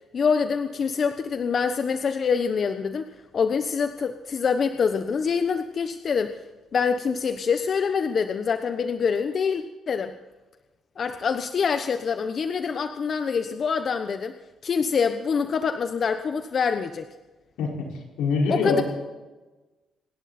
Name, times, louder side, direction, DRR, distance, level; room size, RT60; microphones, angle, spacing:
voice 1, 0.1-6.4 6.7-10.1 11.0-14.3 14.6-17.1 18.5-18.8, left 6 dB, 50° left, 8 dB, 1.1 m, -25 dB
voice 2, 17.6-17.9 18.2-18.8, left 4 dB, 90° left, -1 dB, 5.3 m, -24 dB
27.0 x 11.5 x 4.4 m, 1.2 s
cardioid pair, 90°, 0 cm